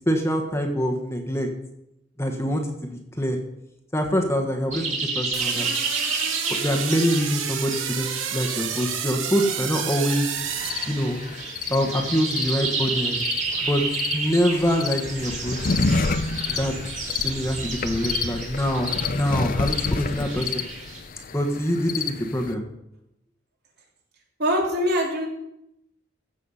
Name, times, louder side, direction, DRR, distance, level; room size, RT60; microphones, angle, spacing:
voice 1, 0.1-1.5 2.2-2.7 3.2-3.4 3.9-4.9 5.1-5.7 6.6-10.3 10.9-11.2 11.7-13.2 13.6-13.8 14.1-15.6 16.5-16.7 17.2-20.6 21.3-22.7, equal, 15° left, 3 dB, 1.3 m, -24 dB
sound 1, 4.7-21.0, right 4 dB, 40° right, 2.9 m, -31 dB
sound 2, 5.3-11.5, right 8 dB, 90° right, 1.1 m, -31 dB
sound 3, 10.4-22.5, left 4 dB, 45° left, 0.6 m, -30 dB
voice 2, 24.4-25.3, equal, 60° right, 0 dB, 3.1 m, -23 dB
15.5 x 6.5 x 5.5 m, 0.83 s
head